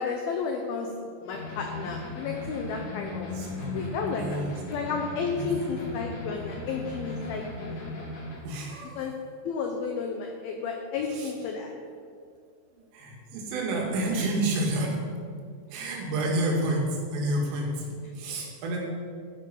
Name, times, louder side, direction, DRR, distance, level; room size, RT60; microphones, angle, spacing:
voice 1, 0.0-3.3 3.7-7.9 9.0-9.1 9.4-11.7, left 5 dB, 85° left, 3 dB, 2.1 m, -32 dB
sound 1, 1.3-8.4, left 2 dB, 45° left, 2.6 m, -37 dB
voice 2, 3.3-4.5 5.4-5.5 8.4-9.0 11.1-11.3 12.8-15.0 15.7-18.8, right 1 dB, 85° right, -2 dB, 4.8 m, -30 dB
12.5 x 9.9 x 5.5 m, 2.3 s
omnidirectional pair, 5.6 m